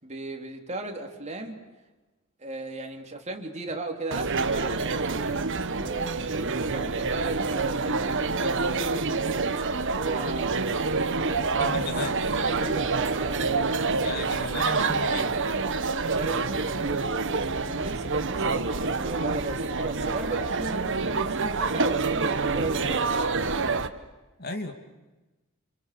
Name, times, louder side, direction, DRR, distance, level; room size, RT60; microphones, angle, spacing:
voice 1, 0.0-1.6 2.4-9.0 9.6-10.9 11.3-12.0 12.4-14.4 15.9-23.1, right 2 dB, 30° right, 3 dB, 3.5 m, -36 dB
sound 1, 4.1-23.9, right 4 dB, 60° right, 1.5 m, -27 dB
voice 2, 11.6-12.1 14.0-15.3 24.4-24.7, left 2 dB, 45° left, 6 dB, 2.6 m, -34 dB
29.5 x 29.0 x 6.9 m, 1.1 s
head